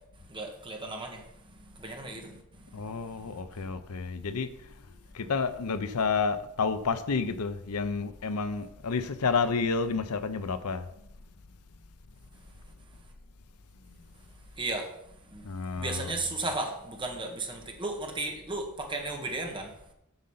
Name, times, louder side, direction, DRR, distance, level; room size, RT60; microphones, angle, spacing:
voice 1, 0.3-1.2 1.7-2.8 14.6-14.9 15.3-15.5 15.8-19.7, right 2 dB, 25° right, 1.5 m, -35 dB
voice 2, 2.7-4.7 5.1-10.9 15.4-16.2, left 4 dB, 80° left, 0.6 m, -30 dB
8.0 x 6.6 x 5.6 m
head